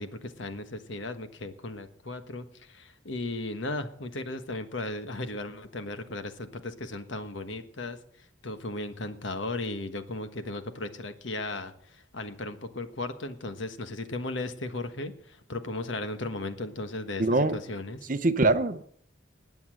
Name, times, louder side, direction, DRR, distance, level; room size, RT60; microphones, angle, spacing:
voice 1, 0.0-8.0 8.4-18.1, left 2 dB, 70° left, 9 dB, 1.4 m, -36 dB
voice 2, 17.2-17.6 18.1-18.8, right 2 dB, 40° right, 12 dB, 0.7 m, -23 dB
19.5 x 7.1 x 7.7 m, 0.65 s
head